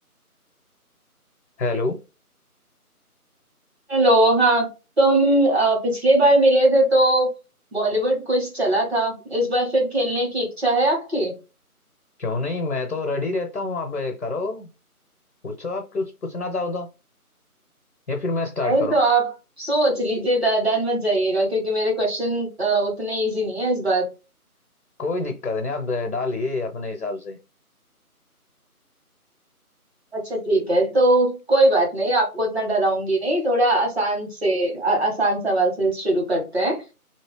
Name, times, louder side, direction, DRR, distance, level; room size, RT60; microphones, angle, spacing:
voice 1, 1.6-2.0 12.2-14.7 15.4-16.9 18.1-19.0 25.0-27.4, left 3 dB, 65° left, 0.8 m, -27 dB
voice 2, 3.9-4.7 5.0-7.3 7.7-11.3 18.6-19.3 19.6-24.1 30.1-36.8, right 1 dB, 45° right, 1.5 m, -20 dB
2.8 x 2.8 x 3.1 m
figure-of-eight pair, 165°, 45 cm